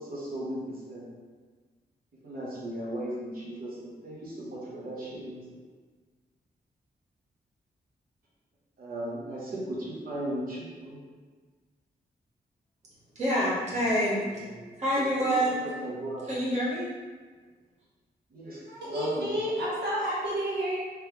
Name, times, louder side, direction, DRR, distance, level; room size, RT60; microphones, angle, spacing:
voice 1, 0.1-0.6 0.9-1.0 2.2-5.4 8.8-11.0 15.8-16.2 18.3-18.6 18.9-19.3, right 1 dB, 60° right, -6 dB, 1.0 m, -36 dB
voice 2, 13.1-14.5 14.8-15.6 16.2-16.9, equal, 45° right, -9 dB, 1.4 m, -27 dB
voice 3, 18.7-20.8, equal, 85° right, -5 dB, 0.7 m, -30 dB
3.3 x 3.1 x 3.4 m, 1.4 s
wide cardioid pair, 145°, 17 cm